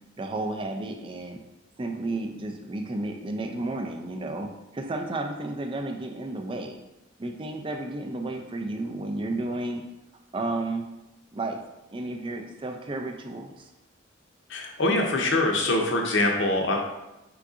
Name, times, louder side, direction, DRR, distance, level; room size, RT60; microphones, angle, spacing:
voice 1, 0.2-1.4 1.8-6.8 7.2-9.8 10.3-10.9 11.3-11.6 11.9-13.7, right 2 dB, 25° right, 4 dB, 0.4 m, -32 dB
voice 2, 14.5-16.8, left 2 dB, 65° left, 1 dB, 0.7 m, -24 dB
4.6 x 3.9 x 2.4 m, 0.98 s
head